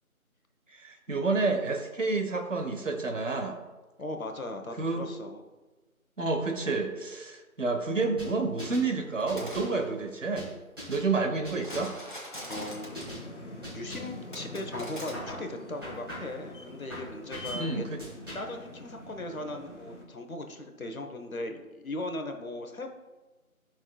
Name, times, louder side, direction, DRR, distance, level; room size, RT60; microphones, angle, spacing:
voice 1, 0.7-3.6 4.8-5.1 6.2-10.5 10.9-11.9 17.5-18.0, right 3 dB, 60° right, 5 dB, 1.1 m, -29 dB
voice 2, 4.0-5.4 12.5-13.0 13.7-17.8 18.3-22.9, left 2 dB, 70° left, 5 dB, 1.1 m, -38 dB
sound 1, 8.2-8.9 9.3-9.8 10.4-11.1 11.4-12.0 12.5-12.7 12.9-13.2 13.6-14.2 14.7-15.4 15.8-16.4 16.9-17.6 18.0-18.6, equal, 15° right, 2.2 m, -41 dB
sound 2, 9.2-9.7 11.6-13.2 14.3-15.1, equal, 35° left, 1.2 m, -42 dB
sound 3, 12.3-20.0, left 1 dB, 55° left, 1.5 m, -45 dB
11.5 x 5.9 x 2.3 m, 1.2 s
figure-of-eight pair, 170°, 43 cm